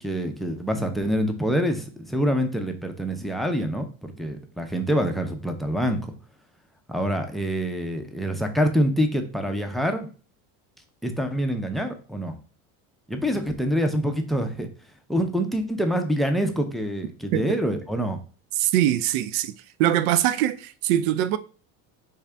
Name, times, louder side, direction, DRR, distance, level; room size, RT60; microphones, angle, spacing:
voice 1, 0.0-6.1 6.9-10.1 11.0-12.4 13.1-14.7 15.1-18.2, equal, ahead, 0.4 m, -26 dB
voice 2, 18.6-19.5 19.8-21.4, right 12 dB, 75° right, 0.5 m, -22 dB
3.6 x 2.7 x 3.3 m
supercardioid pair, 105°, 42 cm